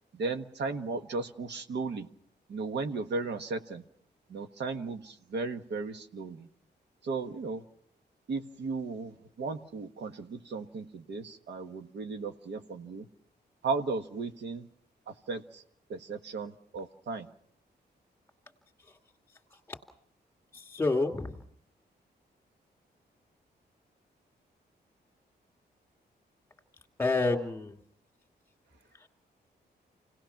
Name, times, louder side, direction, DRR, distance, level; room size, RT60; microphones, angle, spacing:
voice 1, 0.1-2.1 2.5-3.8 4.3-6.5 7.0-7.6 8.3-13.1 13.6-14.7 15.1-15.6 15.9-17.3, right 4 dB, 80° right, 6 dB, 1.5 m, -35 dB
voice 2, 20.5-21.4 27.0-27.8 29.0-29.1, left 3 dB, 15° left, 4 dB, 2.4 m, -29 dB
28.5 x 18.0 x 5.9 m, 0.67 s
wide cardioid pair, 160°, 18 cm